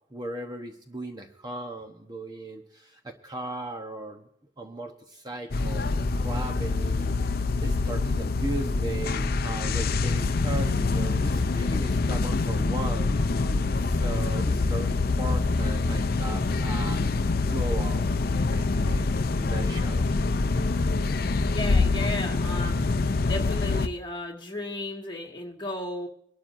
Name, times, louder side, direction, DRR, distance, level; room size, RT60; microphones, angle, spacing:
voice 1, 0.1-4.3 4.6-13.2 13.8-17.0 17.4-20.1, right 2 dB, 20° right, 3 dB, 1.0 m, -37 dB
sound 1, 5.5-23.9, left 3 dB, 55° left, 0.5 m, -25 dB
voice 2, 21.5-23.0 23.2-26.1, left 2 dB, 25° left, 0 dB, 2.1 m, -34 dB
25.0 x 12.0 x 2.6 m, 0.73 s
head